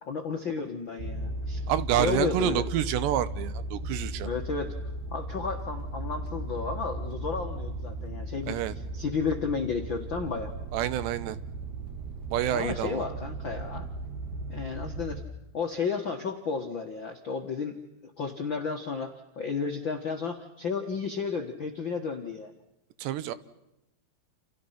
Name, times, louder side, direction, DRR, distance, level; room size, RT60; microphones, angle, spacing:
voice 1, 0.0-1.6 1.9-2.6 4.2-4.7 5.1-8.6 8.9-10.5 12.5-13.9 14.5-15.2 15.5-17.8 18.0-22.5, left 5 dB, 75° left, 3 dB, 1.1 m, -32 dB
sound 1, 1.0-15.2, right 2 dB, 65° right, 3.7 m, -36 dB
voice 2, 1.7-4.3 8.5-8.7 10.7-11.4 12.3-13.0 23.0-23.3, right 12 dB, 80° right, 15 dB, 3.3 m, -28 dB
29.5 x 29.0 x 5.9 m, 0.88 s
omnidirectional pair, 5.0 m